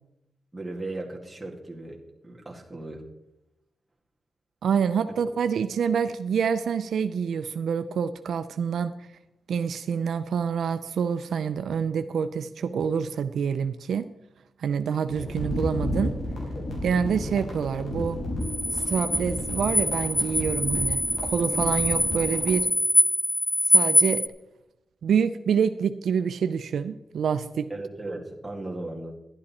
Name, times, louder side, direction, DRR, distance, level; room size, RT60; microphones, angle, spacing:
voice 1, 0.5-3.0 27.7-29.1, right 2 dB, 10° right, -1 dB, 2.3 m, -36 dB
voice 2, 4.6-8.9 9.5-14.1 14.6-16.1 16.8-18.2 18.7-22.7 23.7-24.2 25.0-27.7, right 7 dB, 80° right, 11 dB, 0.5 m, -27 dB
sound 1, 15.1-22.6, left 1 dB, 80° left, 4.6 m, -33 dB
sound 2, 18.4-24.3, left 1 dB, 15° left, 0.8 m, -24 dB
11.5 x 11.5 x 4.2 m, 0.91 s
wide cardioid pair, 115°, 0 cm